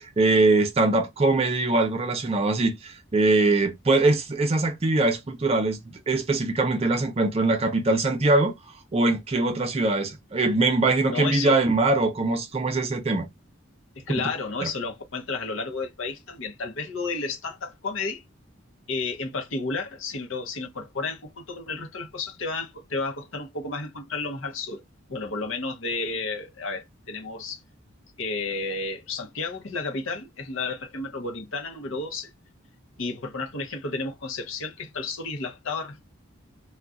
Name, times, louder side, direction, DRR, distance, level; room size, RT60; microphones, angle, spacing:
voice 1, 0.0-8.5 8.9-13.3 14.6-14.7, right 2 dB, 30° right, 0.5 m, -22 dB
voice 2, 11.0-11.6 14.0-18.2 18.9-24.8 25.1-27.6 28.2-32.3 33.0-36.0, left 3 dB, 65° left, 0.7 m, -32 dB
2.4 x 2.3 x 3.8 m
head